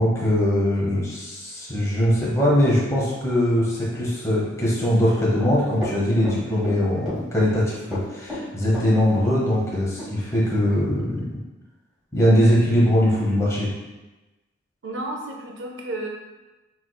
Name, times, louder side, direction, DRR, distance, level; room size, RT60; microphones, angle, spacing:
voice 1, 0.0-11.3 12.1-13.7, equal, 15° left, -6 dB, 1.1 m, -21 dB
Run, 5.4-6.8 7.1-7.6 7.9-9.3 9.6-9.7 10.0-10.1, left 1 dB, 5° right, 1.4 m, -33 dB
voice 2, 14.8-16.1, right 2 dB, 70° right, 0 dB, 0.6 m, -32 dB
5.9 x 3.1 x 2.3 m, 1.1 s
head